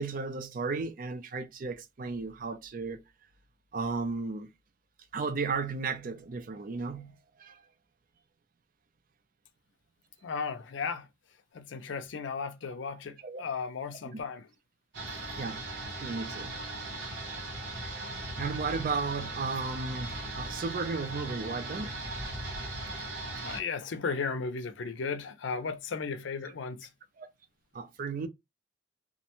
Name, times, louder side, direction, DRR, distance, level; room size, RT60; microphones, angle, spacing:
voice 1, 0.0-3.0 3.7-4.5 5.1-7.6 13.2-13.4 14.1-14.2 15.4-15.6 16.0-16.6 17.9-21.9 27.2-27.3 27.7-28.3, right 4 dB, 45° right, 0.4 m, -34 dB
voice 2, 10.2-11.1 11.5-14.5 22.7-22.8 23.4-26.9, left 5 dB, 80° left, 0.5 m, -35 dB
sound 1, 14.9-23.6, right 2 dB, 75° right, 1.0 m, -38 dB
2.5 x 2.1 x 2.8 m
head